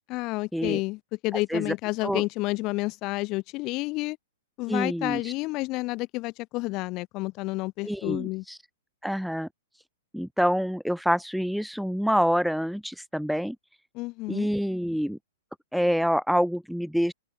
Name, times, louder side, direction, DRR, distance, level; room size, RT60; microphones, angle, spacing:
voice 1, 0.1-4.2 4.6-8.4 13.9-14.5, left 22 dB, 35° left, 7.7 m, -30 dB
voice 2, 4.7-5.3 7.8-8.6 9.0-9.5 9.7-9.8 10.1-13.6 14.3-15.2 15.7-17.1, equal, ahead, 1.8 m, -26 dB
open air
hypercardioid pair, 145°, 0 cm